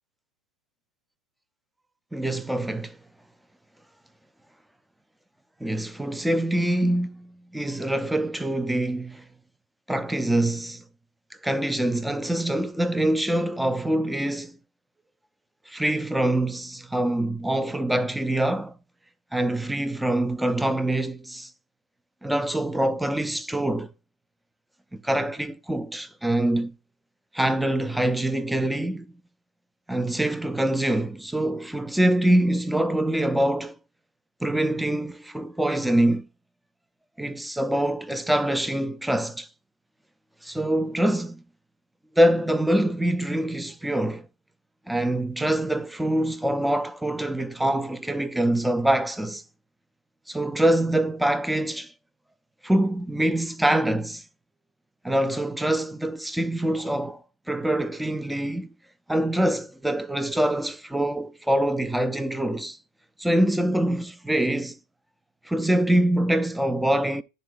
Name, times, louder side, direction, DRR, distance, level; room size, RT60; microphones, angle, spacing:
voice 1, 2.1-3.0 5.6-9.2 9.9-10.8 11.4-14.6 15.7-18.7 19.3-21.5 22.2-23.9 24.9-26.7 27.3-29.1 29.9-33.8 34.4-36.3 37.2-39.5 40.4-41.4 42.2-44.3 44.9-49.4 50.3-51.9 52.6-54.2 55.0-58.7 59.1-62.8 63.2-64.8 65.5-67.2, right 1 dB, 5° right, 0.4 m, -24 dB
11.0 x 3.8 x 3.2 m
figure-of-eight pair, 90°, 0 cm